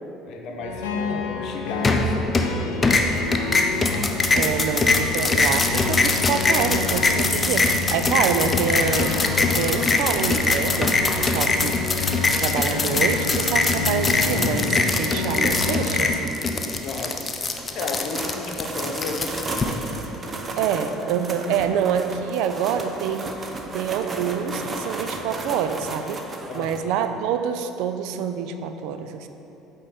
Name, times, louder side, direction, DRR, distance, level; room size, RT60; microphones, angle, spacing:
voice 1, 0.2-3.2 16.8-17.2 17.7-20.4 26.5-26.7, left 3 dB, 60° left, 2 dB, 0.8 m, -34 dB
sound 1, 0.6-16.2, left 5 dB, 80° left, 0.5 m, -29 dB
sound 2, 1.8-2.5 2.8-19.6, left 3 dB, 30° left, 0.5 m, -22 dB
voice 2, 4.3-12.1 12.4-16.4 20.6-23.3 23.7-26.2 26.5-29.3, right 7 dB, 70° right, 8 dB, 0.3 m, -26 dB
sound 3, 17.5-26.8, right 2 dB, 30° right, 0.7 m, -34 dB
8.5 x 3.5 x 4.2 m, 3.0 s
hypercardioid pair, 65°, 0 cm